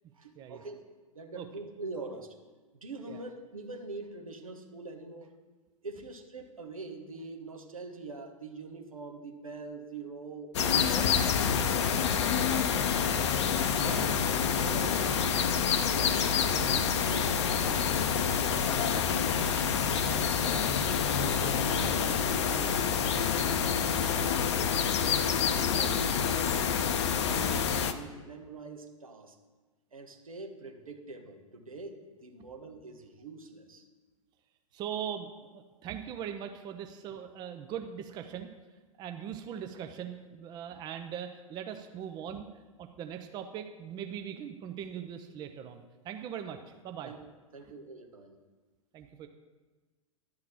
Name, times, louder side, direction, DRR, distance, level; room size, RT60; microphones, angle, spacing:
voice 1, 0.1-0.8 1.1-2.3 2.8-5.3 5.8-11.2 11.8-12.1 12.4-12.9 13.5-14.1 14.4-19.5 20.1-20.7 21.1-25.0 25.5-29.3 29.9-33.8 47.0-47.2 47.5-48.4, right 3 dB, 75° right, 3 dB, 1.3 m, -45 dB
sound 1, 10.5-27.9, left 7 dB, 55° left, 0.6 m, -27 dB
voice 2, 13.8-14.2 20.7-20.8 34.7-38.5 39.0-42.5 42.8-46.6 46.8-47.1 48.9-49.3, right 9 dB, 25° right, 6 dB, 0.5 m, -40 dB
11.0 x 3.8 x 7.4 m, 1.3 s
figure-of-eight pair, 100°, 18 cm